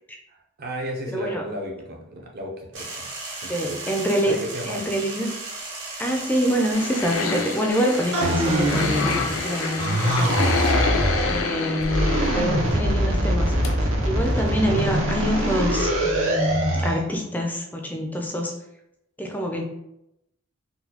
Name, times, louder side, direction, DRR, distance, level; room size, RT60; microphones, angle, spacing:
voice 1, 0.3-2.9 3.4-3.8 4.2-4.9, equal, 50° right, 1 dB, 0.6 m, -34 dB
voice 2, 1.1-1.4 3.5-4.3 4.7-5.4 6.0-10.4 11.2-13.5 14.0-18.5 19.2-19.6, equal, 10° left, 2 dB, 0.3 m, -26 dB
sound 1, 2.7-10.7, right 2 dB, 65° right, 1.0 m, -35 dB
sound 2, 6.7-13.2 13.6-13.7 14.0-14.1 14.5-14.6 14.8-14.9, left 5 dB, 85° left, 0.4 m, -28 dB
sound 3, 8.1-9.4 9.8-11.4 11.8-17.0, right 1 dB, 85° right, 0.7 m, -23 dB
3.9 x 2.2 x 2.8 m, 0.83 s
head